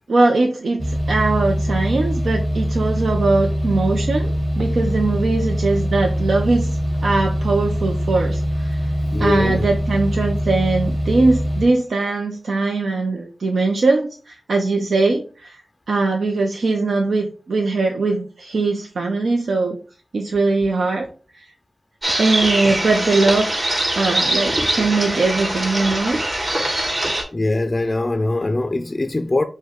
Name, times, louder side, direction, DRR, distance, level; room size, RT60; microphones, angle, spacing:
voice 1, 0.1-6.7 7.0-8.8 9.2-15.6 15.9-19.8 20.1-21.1 21.3-21.4 22.2-23.7 24.0-26.2, right 3 dB, 90° right, 0.5 m, -20 dB
sound 1, 0.8-11.7, equal, 25° right, 1.4 m, -23 dB
voice 2, 9.1-9.7 27.3-29.4, left 2 dB, 30° left, 0.3 m, -22 dB
sound 2, 22.0-27.2, right 1 dB, 50° right, 2.3 m, -22 dB
6.4 x 2.2 x 3.5 m
wide cardioid pair, 70°, 0 cm